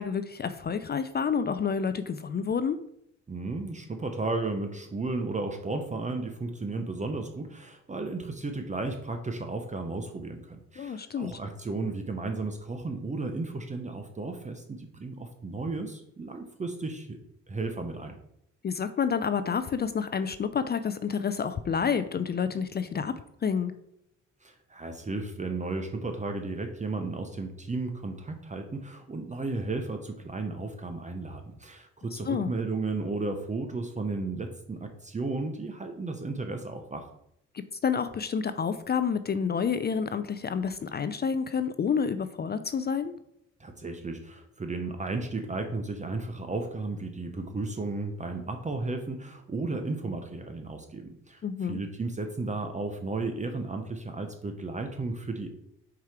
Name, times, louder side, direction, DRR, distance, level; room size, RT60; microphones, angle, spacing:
voice 1, 0.0-2.8 10.8-11.3 18.6-23.7 32.1-32.5 37.5-43.1 51.4-51.8, left 6 dB, 35° left, 11 dB, 0.4 m, -29 dB
voice 2, 3.3-17.2 17.5-18.1 24.4-37.1 43.6-55.5, right 3 dB, 25° right, 5 dB, 0.8 m, -34 dB
4.8 x 4.6 x 5.8 m, 0.76 s
cardioid pair, 90°, 30 cm